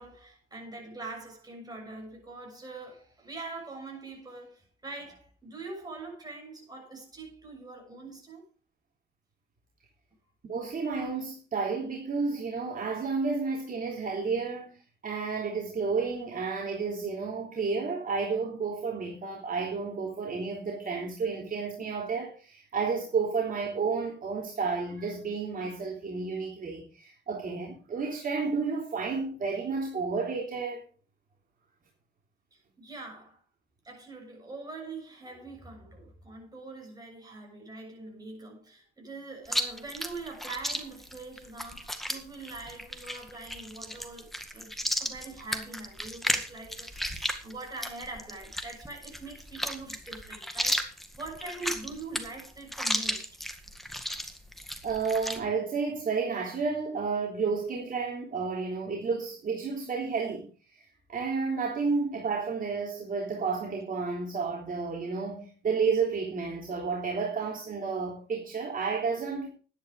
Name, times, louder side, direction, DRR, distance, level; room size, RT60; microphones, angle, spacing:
voice 1, 0.0-8.4 32.5-33.4 33.8-53.3, right 3 dB, 20° right, 7.0 m, -43 dB
voice 2, 10.5-14.7 15.0-30.8 54.8-60.5 61.1-69.5, right 4 dB, 45° right, 3.5 m, -31 dB
Chewing mastication, 39.4-55.4, equal, ahead, 1.9 m, -34 dB
11.5 x 10.0 x 5.0 m
cardioid pair, 90°, 20 cm